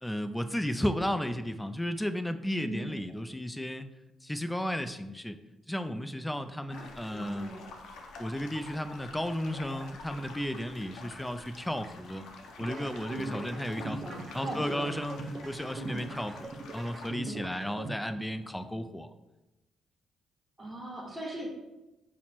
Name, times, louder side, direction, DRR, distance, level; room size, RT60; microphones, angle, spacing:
voice 1, 0.0-3.9 4.2-5.4 5.7-7.5 8.2-12.2 12.6-14.0 14.3-15.2 15.4-19.1, equal, 5° left, 9 dB, 0.3 m, -34 dB
voice 2, 2.6-2.9 6.7-6.8 7.1-7.7 14.0-14.9 20.6-21.5, right 1 dB, 20° right, -2 dB, 1.3 m, -39 dB
sound 1, 6.7-17.1, left 3 dB, 80° left, 0.6 m, -47 dB
sound 2, 12.6-18.6, right 2 dB, 40° right, 0.5 m, -41 dB
5.7 x 2.1 x 4.3 m, 1.0 s
cardioid pair, 90°, 0 cm